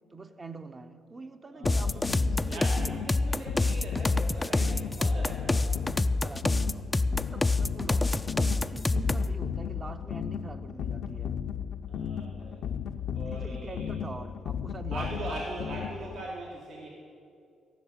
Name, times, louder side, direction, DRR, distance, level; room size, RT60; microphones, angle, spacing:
voice 1, 0.1-3.0 6.2-11.4 13.3-15.4, right 3 dB, 30° right, 8 dB, 0.8 m, -44 dB
voice 2, 1.5-2.0 2.4-6.0 11.9-12.7 13.1-14.0 14.9-16.9, right 1 dB, 70° right, -3 dB, 2.1 m, -41 dB
sound 1, 1.6-16.3, left 8 dB, 70° left, 0.5 m, -36 dB
sound 2, 1.7-9.3, left 2 dB, 20° left, 0.4 m, -26 dB
14.5 x 6.2 x 8.8 m, 2.4 s
cardioid pair, 90°, 0 cm